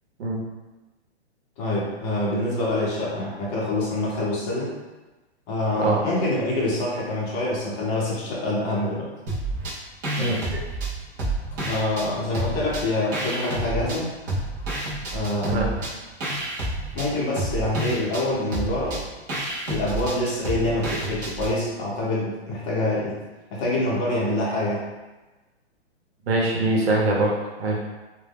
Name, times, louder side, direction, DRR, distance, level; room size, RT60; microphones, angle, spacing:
voice 1, 1.6-4.7 5.5-9.1 11.6-14.1 15.1-15.8 16.9-19.0 19.7-23.2 23.5-24.8, left 1 dB, 30° left, -5 dB, 0.7 m, -26 dB
sound 1, 9.3-9.8 10.0-12.1 12.3-14.0 14.3-21.5, right 2 dB, 20° right, 0.4 m, -29 dB
voice 2, 26.3-27.3 27.6-27.8, right 2 dB, 65° right, -2 dB, 0.8 m, -22 dB
2.2 x 2.0 x 3.4 m, 1.1 s
hypercardioid pair, 145°, 33 cm